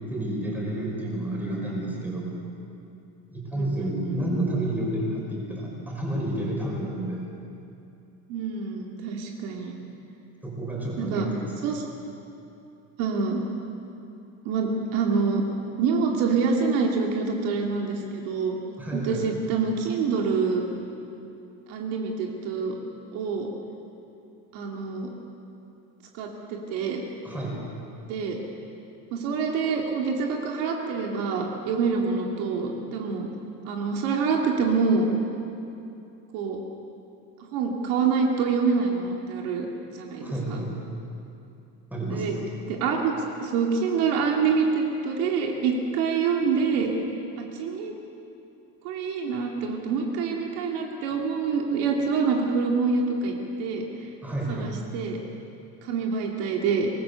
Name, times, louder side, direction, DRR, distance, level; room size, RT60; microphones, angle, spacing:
voice 1, 0.1-2.4 3.3-7.2 10.4-11.7 18.8-19.2 27.2-27.6 40.2-40.8 41.9-42.4 54.2-54.8, right 1 dB, 5° right, -3 dB, 5.1 m, -30 dB
voice 2, 3.5-4.2 8.3-9.7 11.0-11.3 11.6-11.9 13.0-13.4 14.4-15.4 15.8-18.6 18.9-20.6 21.7-22.8 23.1-23.5 24.5-25.1 26.1-27.0 28.1-28.4 29.1-33.3 33.6-35.1 36.3-36.6 37.5-39.7 39.9-40.6 42.1-42.4 42.7-43.1 43.4-46.9 47.5-47.9 48.8-53.9 54.5-55.2 55.8-56.9, right 5 dB, 65° right, 0 dB, 2.5 m, -26 dB
24.5 x 19.5 x 6.9 m, 2.7 s
cardioid pair, 170°, 37 cm